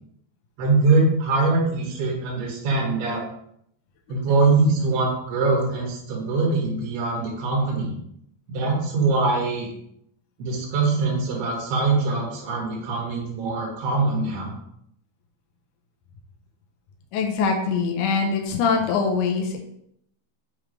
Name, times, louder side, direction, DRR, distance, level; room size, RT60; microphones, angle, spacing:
voice 1, 0.6-3.2 4.1-7.9 8.5-9.7 10.4-14.5, right 3 dB, 80° right, -2 dB, 3.4 m, -23 dB
voice 2, 17.1-19.6, left 5 dB, 85° left, 2 dB, 1.8 m, -23 dB
7.1 x 3.1 x 5.0 m, 0.73 s
omnidirectional pair, 4.6 m